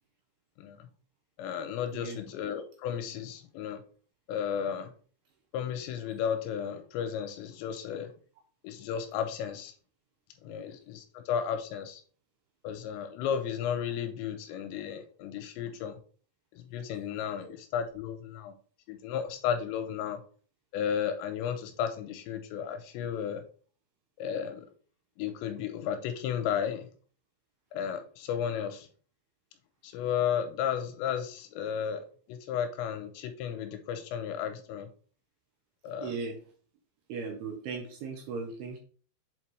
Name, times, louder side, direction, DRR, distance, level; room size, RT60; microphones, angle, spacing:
voice 1, 0.6-0.9 1.4-3.8 4.3-4.9 5.5-8.1 8.6-9.7 10.4-12.0 12.6-16.0 16.5-18.6 18.9-20.2 20.7-23.4 24.2-24.7 25.2-26.9 27.7-28.9 29.8-34.9 35.8-36.2, left 8 dB, 85° left, 7 dB, 2.7 m, -33 dB
voice 2, 36.0-36.4 37.1-38.8, right 4 dB, 75° right, 2 dB, 2.5 m, -37 dB
7.3 x 4.4 x 3.1 m, 0.43 s
omnidirectional pair, 5.4 m